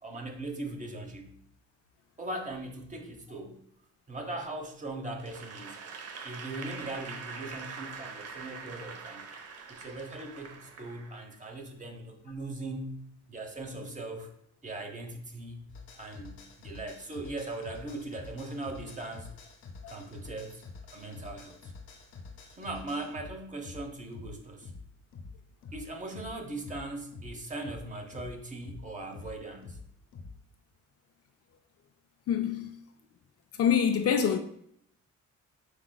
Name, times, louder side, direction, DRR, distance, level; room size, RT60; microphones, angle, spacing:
voice 1, 0.0-1.3 2.2-3.6 4.1-5.8 6.2-9.3 9.7-13.0 13.3-14.3 14.6-15.7 16.0-19.3 19.9-20.6 20.9-21.7 22.6-24.7 25.7-29.8, right 2 dB, 25° right, 0.9 m, -39 dB
Applause / Crowd, 5.2-11.4, right 5 dB, 55° right, 0.7 m, -44 dB
sound 1, 15.7-30.4, left 4 dB, 70° left, 1.0 m, -47 dB
voice 2, 32.3-32.8 33.6-34.4, left 8 dB, 55° left, 0.5 m, -25 dB
5.1 x 3.7 x 2.2 m
cardioid pair, 90°, 30 cm